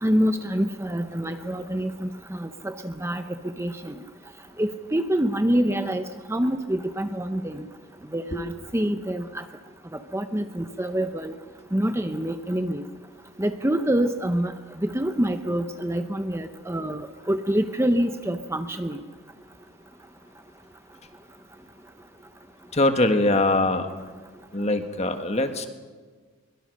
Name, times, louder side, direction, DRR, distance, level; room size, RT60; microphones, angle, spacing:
voice 1, 0.0-3.2 3.6-4.0 4.6-6.0 6.3-7.6 8.1-9.4 10.1-11.3 11.7-12.8 13.4-14.5 14.8-19.0, right 1 dB, 10° right, 8 dB, 0.7 m, -26 dB
voice 2, 22.7-23.9 24.5-25.7, left 2 dB, 30° left, 7 dB, 1.6 m, -22 dB
23.0 x 22.5 x 6.5 m, 1.5 s
head